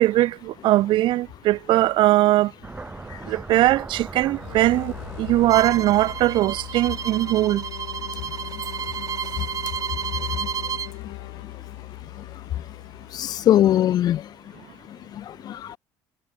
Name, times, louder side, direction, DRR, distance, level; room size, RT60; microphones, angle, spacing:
voice 1, 0.0-2.5 3.3-7.6, right 16 dB, 65° right, 1.0 m, -20 dB
sound 1, 2.6-7.6, right 3 dB, 15° right, 4.4 m, -40 dB
sound 2, 4.3-13.8, left 29 dB, 85° left, 4.8 m, -39 dB
Bowed string instrument, 5.5-10.9, right 8 dB, 40° right, 1.3 m, -31 dB
voice 2, 10.2-10.5 11.0-11.1 13.1-14.3 14.9-15.8, left 11 dB, 45° left, 0.3 m, -22 dB
supercardioid pair, 85°, 9 cm